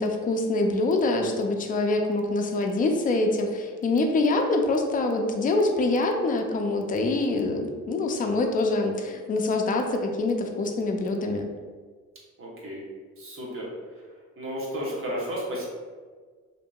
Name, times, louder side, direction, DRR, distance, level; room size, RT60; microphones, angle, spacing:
voice 1, 0.0-11.5, left 2 dB, 30° left, 3 dB, 0.3 m, -25 dB
voice 2, 12.4-12.8 13.2-13.7 14.4-15.7, equal, 45° right, -4 dB, 0.9 m, -32 dB
2.7 x 2.6 x 2.2 m, 1.5 s
cardioid pair, 90°, 30 cm